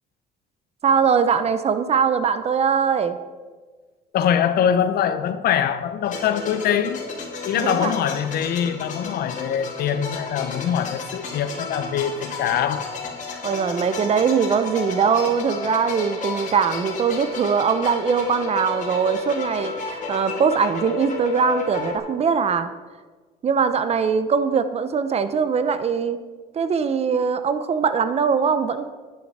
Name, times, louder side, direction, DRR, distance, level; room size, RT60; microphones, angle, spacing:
voice 1, 0.8-3.2 7.6-7.9 13.4-22.7 23.4-26.2 26.5-28.9, right 6 dB, 40° right, 0.9 m, -21 dB
voice 2, 4.1-7.0 7.4-12.9 13.3-13.4, left 9 dB, 65° left, 0.9 m, -23 dB
sound 1, 6.0-22.0, left 4 dB, 45° left, 2.7 m, -32 dB
11.5 x 10.0 x 4.3 m
cardioid pair, 110°, 17 cm